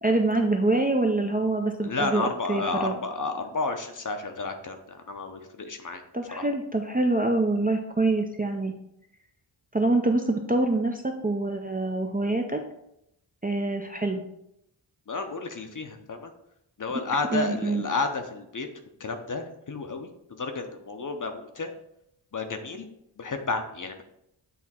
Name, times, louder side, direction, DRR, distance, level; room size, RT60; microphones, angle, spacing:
voice 1, 0.0-3.0 6.1-8.7 9.7-12.6 13.4-14.2 17.3-17.8, right 2 dB, 20° right, 2 dB, 0.4 m, -25 dB
voice 2, 1.8-6.0 15.1-16.3 16.8-18.7 19.0-21.7 22.3-22.9 23.2-24.0, left 3 dB, 40° left, 6 dB, 0.7 m, -31 dB
8.2 x 2.8 x 4.2 m, 0.78 s
wide cardioid pair, 110°, 48 cm